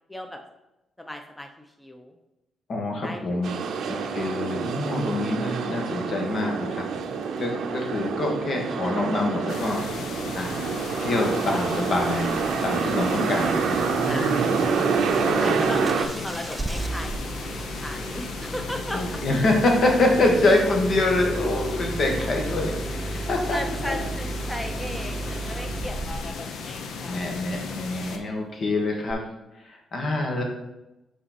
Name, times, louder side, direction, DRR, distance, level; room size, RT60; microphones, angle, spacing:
voice 1, 1.0-1.5 1.8-2.1 3.0-3.5 14.0-14.6 15.4-19.2 23.1-27.3, left 1 dB, 15° left, 4 dB, 0.7 m, -36 dB
voice 2, 2.7-3.5 3.9-6.9 7.4-9.8 10.3-10.6 11.0-14.6 15.3-15.7 18.9-23.6 23.9-24.0 27.0-29.2 29.6-30.4, left 2 dB, 60° left, 1 dB, 1.6 m, -25 dB
sound 1, 3.4-16.1, right 5 dB, 80° right, 0.6 m, -27 dB
sound 2, 9.5-28.2, left 5 dB, 80° left, 0.6 m, -36 dB
Engine starting, 15.8-26.5 29.1-29.2, right 2 dB, 25° right, 0.4 m, -34 dB
5.5 x 4.3 x 4.3 m, 0.96 s
supercardioid pair, 60°, 0 cm